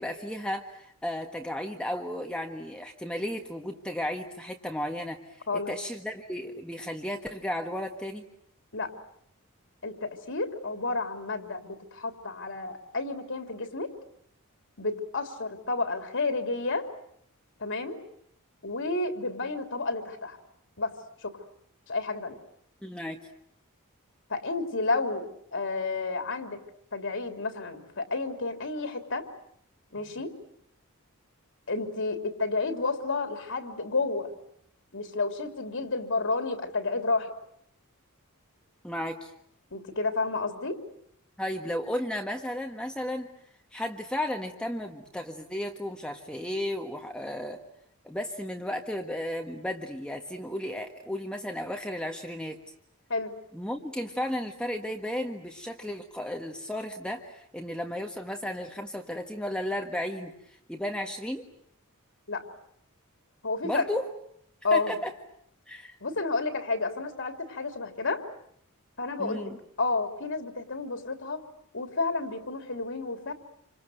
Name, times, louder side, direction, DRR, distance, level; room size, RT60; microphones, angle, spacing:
voice 1, 0.0-5.2 5.5-8.2 22.8-23.2 38.8-39.3 41.4-43.3 43.7-47.6 48.0-52.6 53.5-60.3 60.7-61.4 63.6-64.0 64.7-65.1 65.7-66.0 69.2-69.6, left 1 dB, 5° left, 3 dB, 1.6 m, -34 dB
voice 2, 9.8-13.9 14.8-16.9 17.6-18.0 18.6-20.4 20.8-20.9 21.2-21.4 21.9-22.4 24.3-26.6 26.9-29.3 29.9-30.3 31.7-34.3 34.9-37.3 39.7-40.8 53.1-53.3 62.3-62.4 63.4-63.9 64.6-65.0 66.0-68.2 69.0-71.4 71.7-73.3, left 3 dB, 60° left, 6 dB, 3.1 m, -31 dB
28.0 x 26.5 x 8.0 m, 0.70 s
head